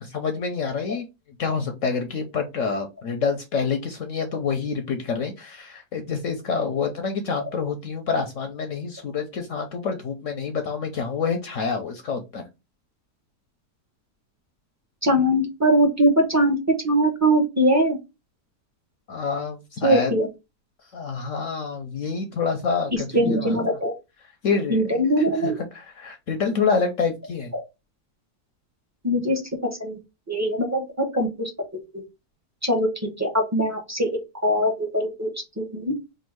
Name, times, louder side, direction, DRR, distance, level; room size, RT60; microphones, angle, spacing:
voice 1, 0.0-1.1 1.4-12.4 19.1-20.1 20.9-23.6 24.4-27.5, left 5 dB, 65° left, 5 dB, 0.9 m, -27 dB
voice 2, 15.0-16.6 16.8-18.0 19.8-20.3 23.1-23.9 24.7-25.6 29.0-29.4 29.8-30.0 30.3-31.5 31.9-32.0 32.6-34.1 34.4-35.3 35.6-35.9, right 1 dB, 15° right, 1 dB, 0.7 m, -21 dB
3.5 x 2.6 x 4.5 m, 0.25 s
omnidirectional pair, 1.7 m